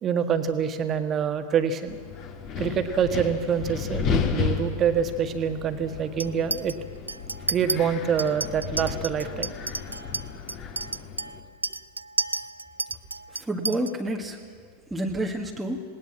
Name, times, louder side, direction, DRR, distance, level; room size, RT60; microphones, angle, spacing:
voice 1, 0.0-2.0 2.6-6.8 7.5-9.5, right 7 dB, 25° right, 8 dB, 1.6 m, -26 dB
Wind, 1.9-11.4, left 6 dB, 35° left, 2.3 m, -33 dB
Chink clink, 6.2-6.7 7.1-7.8 8.2-13.9, right 3 dB, 80° right, 0.4 m, -31 dB
voice 2, 13.3-15.8, right 1 dB, 10° right, 1 dB, 1.6 m, -30 dB
19.5 x 18.5 x 7.4 m, 2.1 s
figure-of-eight pair, 90°, 0 cm